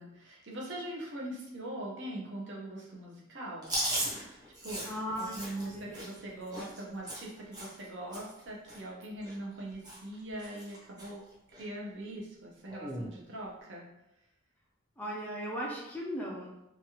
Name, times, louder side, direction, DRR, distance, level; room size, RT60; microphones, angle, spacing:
voice 1, 0.0-3.7 4.6-4.9 5.2-11.2 11.5-13.8, right 1 dB, 60° right, -3 dB, 0.7 m, -41 dB
Chewing mastication, 3.6-7.9 8.1-8.4 8.7-9.6 9.8-10.1 10.4-11.1 11.5-11.6 12.7-13.1, right 1 dB, 20° right, 0.8 m, -37 dB
voice 2, 4.9-6.0 15.0-16.5, equal, 10° left, -4 dB, 0.4 m, -37 dB
3.0 x 2.3 x 2.9 m, 0.90 s
head